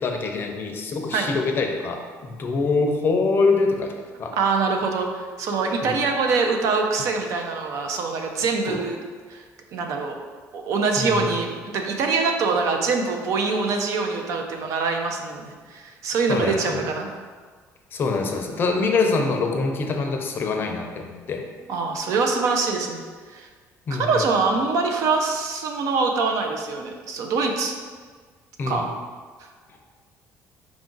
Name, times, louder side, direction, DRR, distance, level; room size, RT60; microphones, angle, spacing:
voice 1, 0.0-3.9 4.2-4.4 5.8-5.9 8.7-8.8 11.0-11.2 16.3-16.8 17.9-21.5 23.9-24.2 28.6-28.9, left 4 dB, 40° left, 3 dB, 0.5 m, -24 dB
voice 2, 4.3-9.0 9.3-9.4 9.7-10.2 10.5-17.1 21.7-23.0 23.3-23.5 23.9-27.7 28.7-29.0, right 4 dB, 65° right, 3 dB, 0.5 m, -24 dB
4.8 x 2.5 x 3.8 m, 1.6 s
cardioid pair, 135°, 6 cm